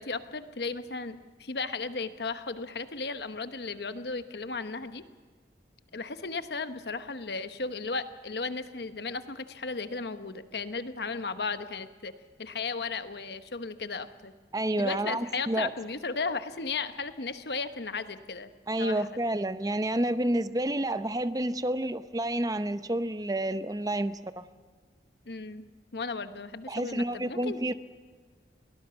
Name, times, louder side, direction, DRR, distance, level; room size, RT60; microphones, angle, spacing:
voice 1, 0.0-5.0 5.9-12.1 12.4-14.3 14.7-18.5 18.8-19.1 25.2-27.6, left 4 dB, 70° left, 10 dB, 1.1 m, -35 dB
voice 2, 14.5-15.7 18.7-24.4 26.7-27.7, right 1 dB, 20° right, 12 dB, 0.7 m, -29 dB
22.0 x 18.0 x 7.0 m, 1.5 s
head